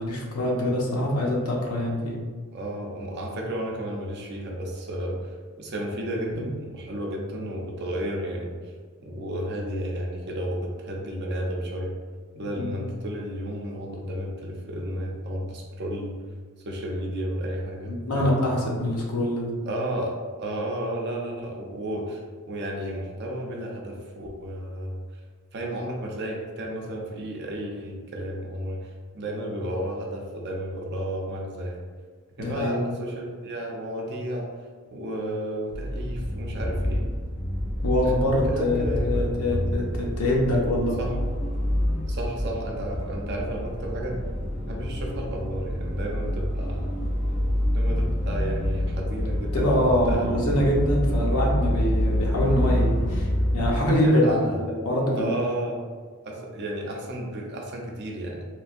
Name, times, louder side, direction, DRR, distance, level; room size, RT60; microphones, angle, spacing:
voice 1, 0.0-2.2 6.3-6.4 12.6-12.8 17.9-19.6 32.4-32.9 37.8-41.0 49.5-55.4, left 1 dB, 75° left, -2 dB, 0.7 m, -24 dB
voice 2, 2.5-8.7 9.0-11.9 12.3-16.2 16.6-18.4 19.6-22.2 22.5-25.0 25.5-31.8 32.4-34.5 34.9-37.0 38.0-39.6 41.0-41.1 42.1-44.2 44.7-47.0 47.7-50.4 54.0-54.6 55.1-55.8 56.2-58.5, right 1 dB, 50° right, -1 dB, 0.5 m, -32 dB
sound 1, 35.7-53.7, equal, 35° left, 0.7 m, -27 dB
3.2 x 2.6 x 2.5 m, 1.5 s
head